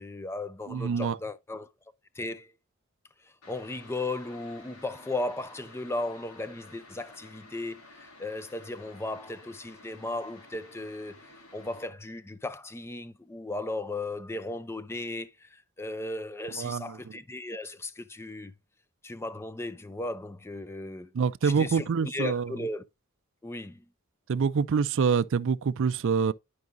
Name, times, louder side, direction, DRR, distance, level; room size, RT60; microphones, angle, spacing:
voice 1, 0.0-1.7 2.1-2.5 3.2-18.5 19.0-21.1 21.4-22.8 23.4-23.9, left 2 dB, 10° left, 0.4 m, -36 dB
voice 2, 0.7-1.2 16.5-17.1 21.1-22.5 24.3-26.3, right 6 dB, 60° right, 0.4 m, -26 dB
sound 1, 3.4-11.9, left 2 dB, 65° left, 1.7 m, -52 dB
11.0 x 4.7 x 2.5 m
head